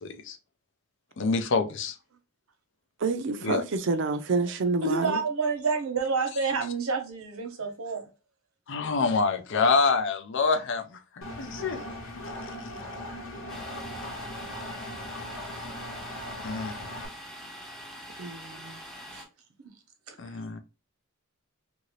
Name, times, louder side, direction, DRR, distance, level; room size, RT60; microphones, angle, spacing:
voice 1, 0.0-0.4 1.2-2.0 3.4-3.6 8.7-11.8 12.5-12.6 16.4-16.8 20.2-20.6, left 4 dB, 60° left, 0.5 m, -26 dB
voice 2, 3.0-5.2 18.2-18.8, right 3 dB, 60° right, 0.5 m, -28 dB
voice 3, 4.8-8.1 19.1-19.3 19.6-19.7 20.1-20.4, right 4 dB, 85° right, 1.0 m, -29 dB
Engine, 11.2-17.1, left 1 dB, 75° left, 0.9 m, -39 dB
Domestic sounds home sounds, 13.5-19.3, equal, ahead, 0.6 m, -44 dB
2.8 x 2.6 x 3.0 m
head